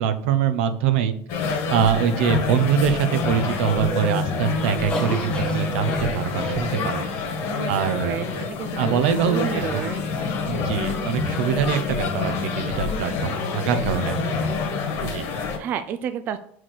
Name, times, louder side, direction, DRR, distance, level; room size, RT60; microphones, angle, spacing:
voice 1, 0.0-1.4 1.7-7.0 7.7-8.2 8.8-9.8 10.4-14.2 15.0-15.2, right 8 dB, 80° right, 10 dB, 1.0 m, -24 dB
sound 1, 1.3-15.6, left 4 dB, 45° left, 1.7 m, -27 dB
sound 2, 3.9-7.3, equal, 15° left, 1.4 m, -34 dB
voice 2, 7.5-8.3 8.6-10.0 15.3-16.4, right 8 dB, 30° right, 9 dB, 0.4 m, -31 dB
6.5 x 4.8 x 6.0 m, 0.65 s
cardioid pair, 170°, 6 cm